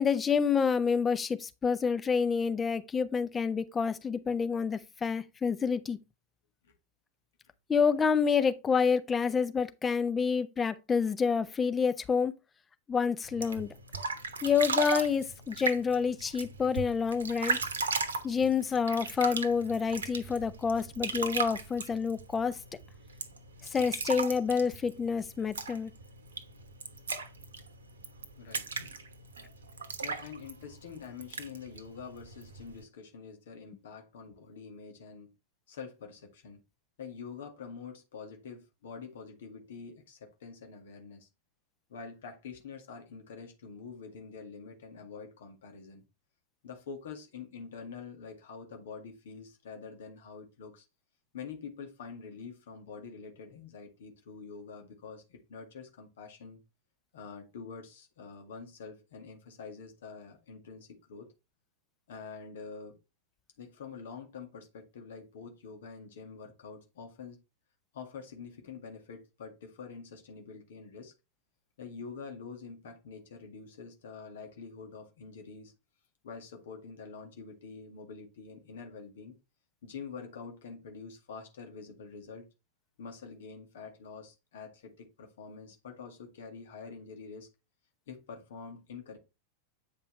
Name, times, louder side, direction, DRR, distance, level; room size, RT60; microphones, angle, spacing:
voice 1, 0.0-6.0 7.7-12.3 12.9-13.7 14.4-17.6 18.2-22.6 23.7-25.9, left 6 dB, 20° left, 0.8 m, -28 dB
sound 1, 13.2-32.8, right 4 dB, 70° right, 1.0 m, -37 dB
voice 2, 28.4-28.7 30.0-35.3 35.7-36.6 37.0-41.3 41.9-46.0 46.6-50.9 51.3-56.6 57.1-61.3 62.1-63.0 63.6-67.4 67.9-71.1 71.8-75.7 76.2-79.3 79.8-82.5 83.0-87.5 88.1-89.2, left 5 dB, 60° left, 1.9 m, -46 dB
8.9 x 5.4 x 3.2 m
figure-of-eight pair, 90°, 0 cm